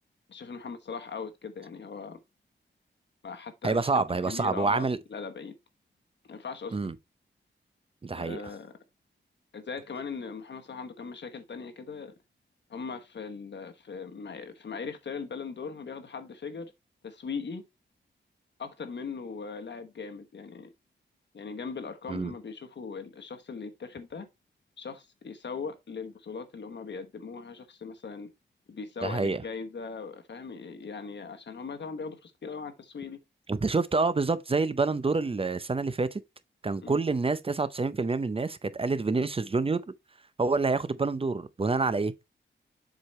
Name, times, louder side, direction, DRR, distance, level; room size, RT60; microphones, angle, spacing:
voice 1, 0.3-2.2 3.2-5.5 6.3-6.9 8.2-8.8 9.5-12.1 12.7-16.7 17.0-17.6 18.6-20.7 21.3-24.3 24.8-28.3 28.7-33.2 36.8-37.0, left 5 dB, 70° left, 1.2 m, -39 dB
voice 2, 3.6-5.0 6.7-6.9 8.0-8.4 22.1-22.3 29.0-29.4 33.5-36.2 36.6-39.8 40.4-42.3, right 3 dB, 30° right, 0.6 m, -27 dB
7.5 x 4.8 x 3.1 m
wide cardioid pair, 110°, 19 cm